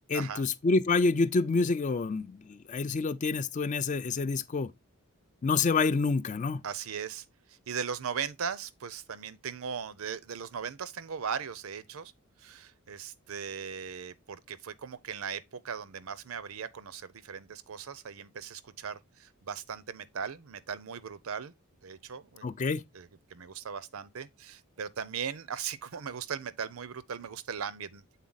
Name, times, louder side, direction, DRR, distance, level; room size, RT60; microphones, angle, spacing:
voice 1, 0.1-4.7 5.4-6.6 22.4-22.8, left 4 dB, 35° left, 0.3 m, -27 dB
voice 2, 6.6-12.1 12.4-21.5 21.8-22.7 22.9-28.0, right 7 dB, 85° right, 0.6 m, -38 dB
7.4 x 4.0 x 3.9 m
head